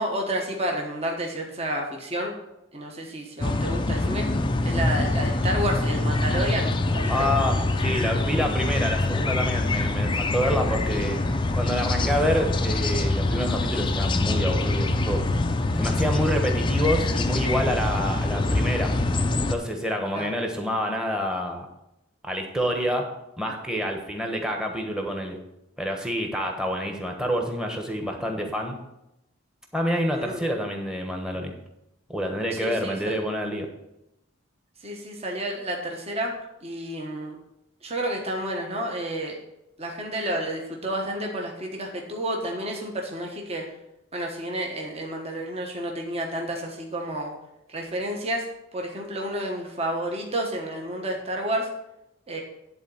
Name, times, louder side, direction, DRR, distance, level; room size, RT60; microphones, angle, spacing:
voice 1, 0.0-2.3 2.7-4.3 4.6-7.3 20.1-20.4 30.1-30.4 32.5-33.2 34.8-36.3 36.6-37.4 37.8-39.4 39.8-43.7 44.1-47.3 47.7-48.4 48.7-51.7 52.3-52.4, right 1 dB, 30° right, 1 dB, 1.2 m, -30 dB
sound 1, 3.4-19.6, left 2 dB, 25° left, 0.5 m, -24 dB
voice 2, 7.1-11.2 11.5-15.2 15.7-18.9 19.5-21.7 22.2-23.1 23.4-25.4 25.8-28.8 29.7-31.5 32.1-33.7, equal, 5° right, 3 dB, 1.2 m, -27 dB
10.5 x 4.1 x 7.0 m, 0.89 s
head